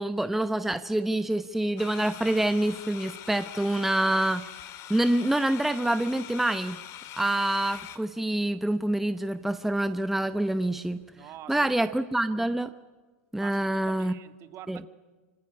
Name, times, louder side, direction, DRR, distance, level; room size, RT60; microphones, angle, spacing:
voice 1, 0.0-4.4 4.9-6.8 7.2-11.0 11.5-12.7 13.3-14.1 14.7-14.8, right 1 dB, 5° right, 11 dB, 0.8 m, -26 dB
sound 1, 1.8-8.0, left 11 dB, 45° left, 2.8 m, -43 dB
voice 2, 11.2-11.9 13.4-14.9, right 12 dB, 40° right, 11 dB, 1.7 m, -46 dB
25.0 x 24.0 x 9.7 m, 1.4 s
hypercardioid pair, 110°, 7 cm